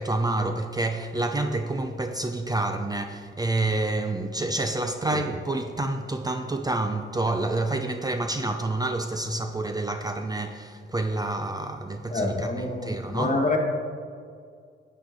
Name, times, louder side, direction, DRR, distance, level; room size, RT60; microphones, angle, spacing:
voice 1, 0.0-13.5, right 2 dB, 20° right, 0.6 m, -28 dB
voice 2, 12.1-13.6, left 2 dB, 35° left, 1.7 m, -27 dB
11.5 x 8.8 x 3.8 m
cardioid pair, 75°, 21 cm